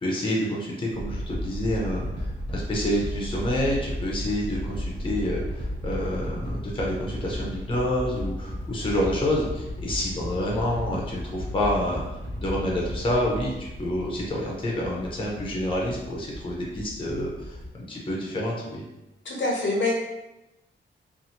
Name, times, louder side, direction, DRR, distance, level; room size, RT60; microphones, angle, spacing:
voice 1, 0.0-12.0 12.4-17.6 17.9-18.8, left 1 dB, 25° left, -3 dB, 0.6 m, -28 dB
sound 1, 0.9-17.7, equal, 60° right, 0.7 m, -34 dB
voice 2, 19.2-19.9, left 2 dB, 65° left, -2 dB, 0.6 m, -25 dB
2.7 x 2.5 x 2.8 m, 0.95 s
wide cardioid pair, 175°, 21 cm